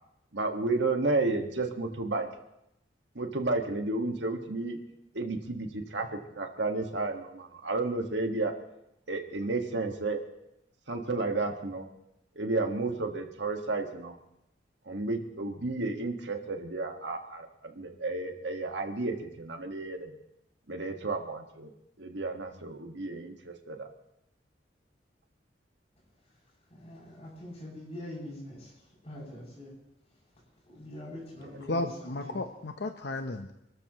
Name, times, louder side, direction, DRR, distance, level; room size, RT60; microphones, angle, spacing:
voice 1, 0.3-2.3 3.2-4.8 5.1-6.1 6.4-8.5 9.1-10.2 10.9-11.9 12.4-14.2 14.9-20.2 20.7-21.7 22.0-23.9, right 3 dB, 75° right, 4 dB, 1.8 m, -32 dB
voice 2, 26.7-28.7 29.0-29.7 30.7-32.4, left 1 dB, 35° left, -5 dB, 7.6 m, -44 dB
voice 3, 31.7-33.5, left 2 dB, 65° left, 6 dB, 0.9 m, -33 dB
28.0 x 13.5 x 3.1 m, 0.82 s
head